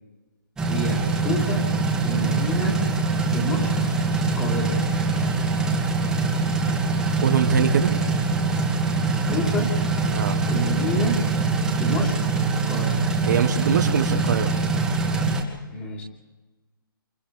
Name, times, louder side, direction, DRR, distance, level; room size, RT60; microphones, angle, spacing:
sound 1, 0.6-15.4, right 3 dB, 5° right, 2.1 m, -23 dB
voice 1, 0.7-1.7 2.0-2.9 3.3-3.9 4.2-4.8 9.3-9.7 10.5-11.2 11.8-13.0 15.7-16.0, equal, 10° left, 0 dB, 3.3 m, -28 dB
voice 2, 7.2-8.0 10.1-10.4 13.3-14.5, right 7 dB, 50° right, 5 dB, 1.7 m, -22 dB
29.0 x 28.0 x 3.5 m, 1.2 s
hypercardioid pair, 165°, 12 cm